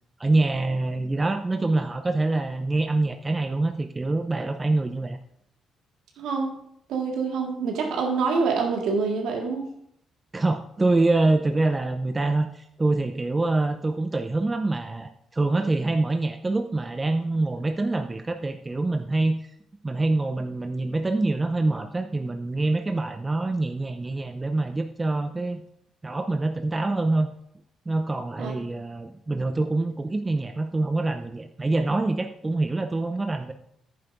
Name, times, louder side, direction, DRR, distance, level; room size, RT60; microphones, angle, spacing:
voice 1, 0.2-5.2 10.3-19.5 19.8-25.6 26.0-27.3 27.9-33.5, right 2 dB, 25° right, 8 dB, 0.7 m, -25 dB
voice 2, 6.2-6.6 6.9-9.7 28.4-28.5, right 4 dB, 70° right, 1 dB, 1.8 m, -26 dB
11.0 x 9.3 x 2.6 m, 0.73 s
hypercardioid pair, 50°, 0 cm